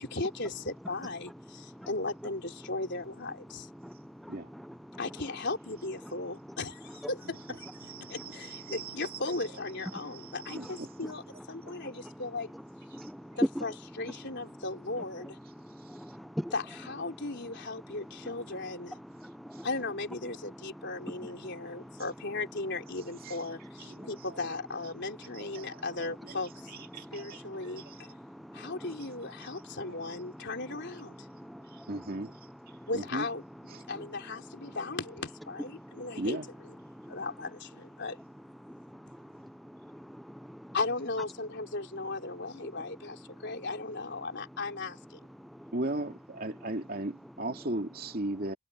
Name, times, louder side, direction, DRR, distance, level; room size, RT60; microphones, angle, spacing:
voice 1, 0.0-3.7 5.0-7.7 8.1-12.5 13.4-15.4 16.5-19.0 19.6-28.1 28.5-31.3 32.9-33.4 33.9-36.4 37.1-38.2 40.7-45.2, left 3 dB, 50° left, 4.0 m, -37 dB
voice 2, 3.8-5.0 8.0-8.1 10.5-10.6 10.9-11.1 11.6-11.9 12.9-13.7 15.6-16.5 19.1-19.7 20.8-21.1 21.4-21.5 21.8-22.0 23.9-24.1 25.6-25.7 26.9-27.9 28.2-29.0 31.2-32.1 32.7-32.9 35.7-36.0 36.9-37.2 38.6-40.7 45.4-45.7, equal, ahead, 0.3 m, -41 dB
voice 3, 7.8-9.2 10.2-10.9 13.0-13.1 23.2-23.4 23.9-24.1 25.4-26.4 26.9-27.4 27.9-28.0 29.9-30.0 31.9-32.4 32.9-33.3 36.2-36.5 45.7-48.5, right 1 dB, 45° right, 2.5 m, -37 dB
head